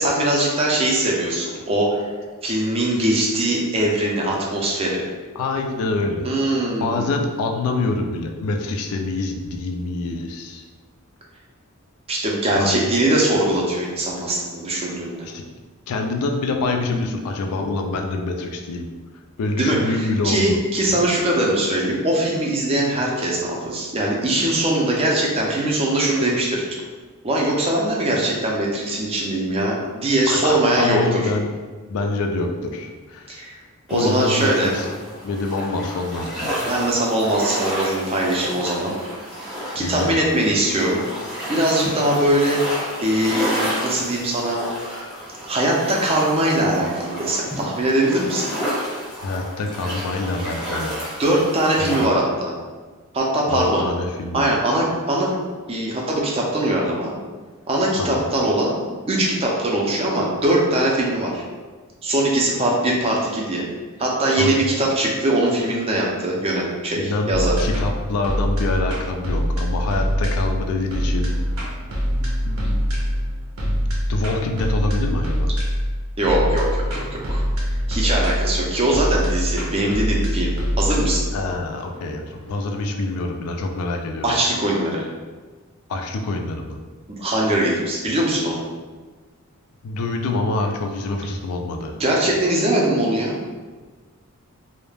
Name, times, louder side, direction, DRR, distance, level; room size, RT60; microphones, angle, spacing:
voice 1, 0.0-2.0 2.4-5.1 6.2-7.1 12.1-15.3 19.5-26.6 27.2-31.3 33.3-33.6 33.9-34.7 36.7-38.9 39.7-41.0 41.5-42.6 43.0-44.6 45.5-48.5 51.2-52.5 53.1-53.8 54.3-55.4 55.7-57.1 57.7-58.7 59.1-61.4 62.0-63.6 64.0-67.6 76.2-77.4 77.9-80.5 80.8-81.3 84.2-85.1 87.1-88.6 92.0-93.6, right 1 dB, 25° right, -2 dB, 0.4 m, -21 dB
voice 2, 5.4-6.3 6.8-10.6 12.6-12.8 15.2-15.5 15.9-18.9 19.4-20.6 30.3-31.5 31.9-33.4 33.9-34.9 35.2-36.7 39.8-40.3 49.2-51.0 51.8-52.1 53.5-54.5 58.0-58.2 64.3-64.6 67.0-71.3 72.4-73.0 73.6-75.5 81.3-84.3 85.9-86.8 89.8-92.0, left 2 dB, 85° left, 3 dB, 0.3 m, -26 dB
sound 1, 33.9-52.0, equal, ahead, 0.7 m, -31 dB
sound 2, 67.3-84.4, equal, 75° right, 0.6 m, -24 dB
2.3 x 2.0 x 3.2 m, 1.4 s
head